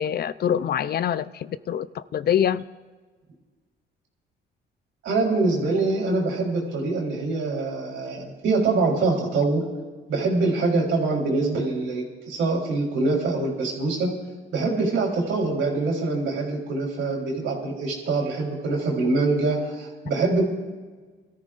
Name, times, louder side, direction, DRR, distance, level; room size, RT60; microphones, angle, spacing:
voice 1, 0.0-2.6, left 9 dB, 55° left, 15 dB, 0.5 m, -25 dB
voice 2, 5.0-9.7 10.1-14.1 14.5-20.5, right 3 dB, 80° right, -1 dB, 3.9 m, -24 dB
24.0 x 14.0 x 2.5 m, 1.4 s
cardioid pair, 90°, 20 cm